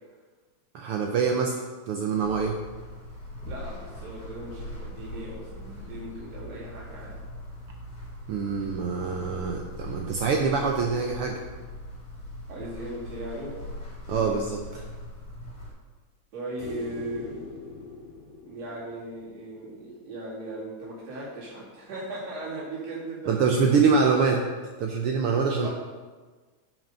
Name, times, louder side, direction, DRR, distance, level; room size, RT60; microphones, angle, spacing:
voice 1, 0.7-1.6 1.9-2.6 8.3-11.4 14.1-14.8 23.3-24.5 24.8-25.7, right 5 dB, 90° right, 2 dB, 1.2 m, -25 dB
sound 1, 2.2-15.7, left 1 dB, 55° left, 3.5 m, -41 dB
voice 2, 3.5-7.1 12.5-13.6 14.1-14.4 16.3-17.4 18.5-23.4 25.5-25.7, right 1 dB, 60° right, -12 dB, 3.4 m, -38 dB
sound 2, 16.6-19.9 22.4-22.5, left 3 dB, 90° left, 3.8 m, -42 dB
9.3 x 6.1 x 5.5 m, 1.4 s
omnidirectional pair, 3.4 m